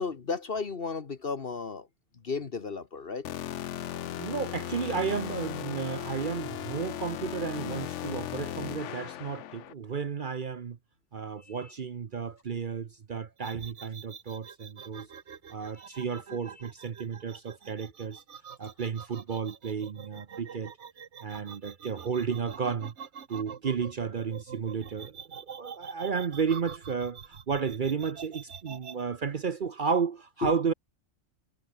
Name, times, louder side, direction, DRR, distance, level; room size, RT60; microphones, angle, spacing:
voice 1, 0.0-1.9 2.2-3.3 11.4-11.7 15.7-16.0 30.4-30.5, left 4 dB, 55° left, 1.5 m, -34 dB
sound 1, 3.2-9.7, left 11 dB, 90° left, 1.0 m, -37 dB
voice 2, 4.2-10.8 11.1-15.1 15.5-18.2 18.6-20.7 21.2-22.9 23.3-30.7, right 6 dB, 50° right, 0.9 m, -33 dB
sound 2, 13.4-29.0, right 7 dB, 75° right, 1.5 m, -45 dB
omnidirectional pair, 1.2 m